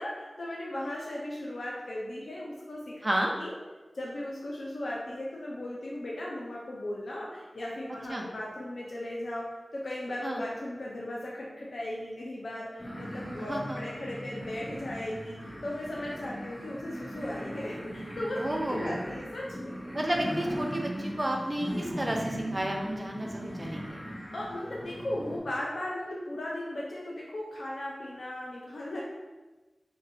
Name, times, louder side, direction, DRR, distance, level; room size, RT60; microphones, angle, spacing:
voice 1, 0.0-3.0 3.4-3.5 3.9-9.5 9.7-18.4 18.7-19.8 24.3-29.0, left 1 dB, 85° left, -4 dB, 0.4 m, -37 dB
sound 1, 12.8-25.4, equal, 30° left, 0.8 m, -39 dB
voice 2, 13.5-13.8 18.4-19.0 19.9-24.0, right 1 dB, 25° right, 0 dB, 0.5 m, -31 dB
3.1 x 3.0 x 2.6 m, 1.2 s
wide cardioid pair, 80°, 0 cm